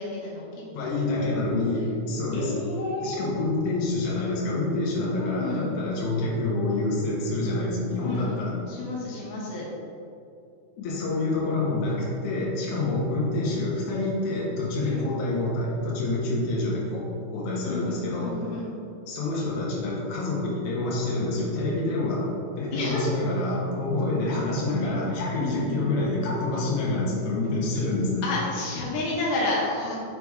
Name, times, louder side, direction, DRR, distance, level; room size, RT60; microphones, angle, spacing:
voice 1, 0.0-1.3 2.3-3.2 5.2-5.8 8.0-8.4 8.7-9.7 14.8-15.0 17.6-18.8 22.7-23.0 24.8-25.0 25.4-25.9 28.2-30.0, left 2 dB, 70° left, -4 dB, 2.6 m, -31 dB
voice 2, 0.7-2.5 3.0-8.5 10.8-17.1 17.3-18.3 19.1-28.3, left 2 dB, 85° left, -5 dB, 1.7 m, -27 dB
6.9 x 4.8 x 3.5 m, 2.7 s
omnidirectional pair, 5.2 m